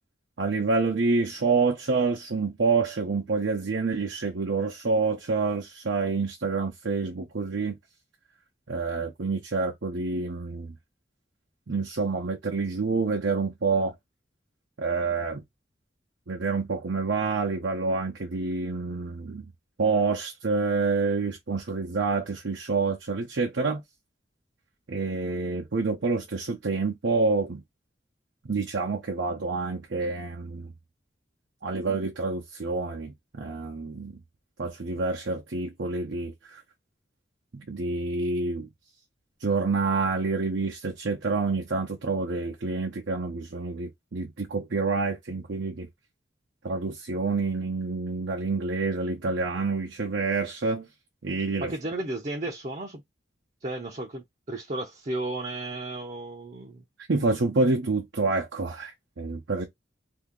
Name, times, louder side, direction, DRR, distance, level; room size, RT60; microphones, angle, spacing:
voice 1, 0.4-7.8 8.7-10.7 11.7-13.9 14.8-15.4 16.3-19.4 19.8-23.8 24.9-27.6 28.4-30.7 31.6-34.2 34.6-36.6 37.5-38.7 39.4-45.9 46.6-50.9 51.2-51.7 57.1-59.7, right 4 dB, 80° right, 0.7 m, -28 dB
voice 2, 51.6-53.0 53.6-56.8, right 2 dB, 40° right, 0.6 m, -34 dB
2.8 x 2.8 x 3.6 m
head